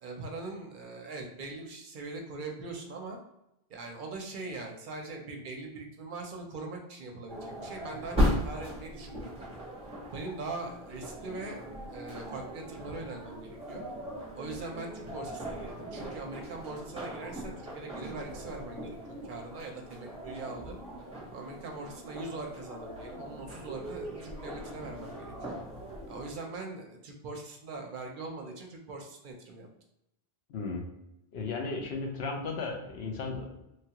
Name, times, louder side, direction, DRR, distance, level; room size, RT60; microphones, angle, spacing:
voice 1, 0.0-3.2 3.7-9.5 10.1-11.6 11.9-13.8 14.3-19.0 19.2-20.8 21.3-25.6 26.1-29.7, right 3 dB, 60° right, 2 dB, 0.7 m, -41 dB
sound 1, 7.3-26.3, equal, 5° right, 0.9 m, -38 dB
voice 2, 30.5-30.9 31.3-33.6, left 4 dB, 85° left, 2 dB, 0.9 m, -35 dB
3.2 x 2.3 x 2.8 m, 0.87 s
omnidirectional pair, 1.0 m